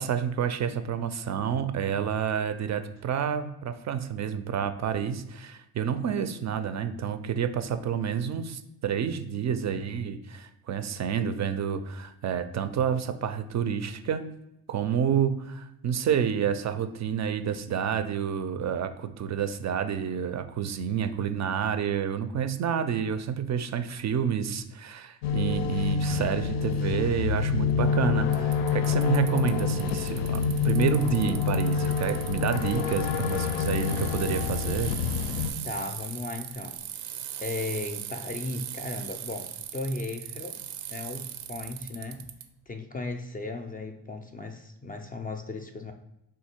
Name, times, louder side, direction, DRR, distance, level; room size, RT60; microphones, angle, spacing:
voice 1, 0.0-14.3 14.7-34.9, right 8 dB, 45° right, 10 dB, 0.4 m, -29 dB
sound 1, 25.2-35.5, left 6 dB, 85° left, 0.5 m, -27 dB
Bicycle, 28.3-42.4, right 11 dB, 85° right, 0.6 m, -39 dB
voice 2, 35.6-36.8 37.4-42.2 42.7-45.9, left 2 dB, 20° left, 5 dB, 0.3 m, -36 dB
3.6 x 2.6 x 4.3 m, 0.86 s
cardioid pair, 85°, 41 cm